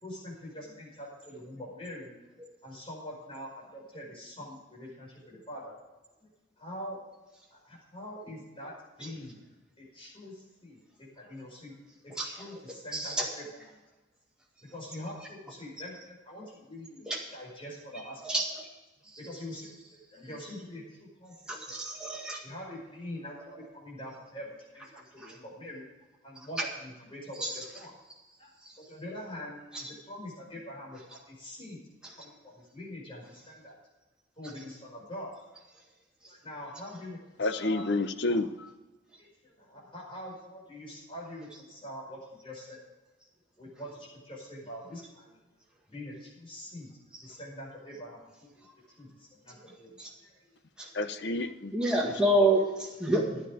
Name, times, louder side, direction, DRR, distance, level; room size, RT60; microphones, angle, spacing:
voice 1, 0.0-2.1 2.6-5.8 6.2-6.3 6.6-7.0 7.5-9.4 9.8-11.8 12.0-13.8 14.7-18.2 19.2-19.7 20.1-21.3 21.7-21.8 22.4-25.8 26.2-27.9 28.4-28.5 28.8-31.8 32.2-33.7 34.4-35.3 36.3-37.9 38.3-38.4 39.2-42.9 43.6-45.4 45.9-46.9 47.2-48.6 49.0-50.5, left 1 dB, 30° left, -4 dB, 5.3 m, -44 dB
voice 2, 12.9-13.2 17.1-17.2 18.2-18.4 21.5-22.4 25.2-25.3 27.4-27.5 50.0-50.1 50.8-50.9 51.7-53.4, right 1 dB, 5° right, -2 dB, 1.8 m, -27 dB
voice 3, 37.4-38.7 50.9-52.1, left 2 dB, 65° left, 11 dB, 0.8 m, -30 dB
13.0 x 9.9 x 5.0 m, 1.1 s
head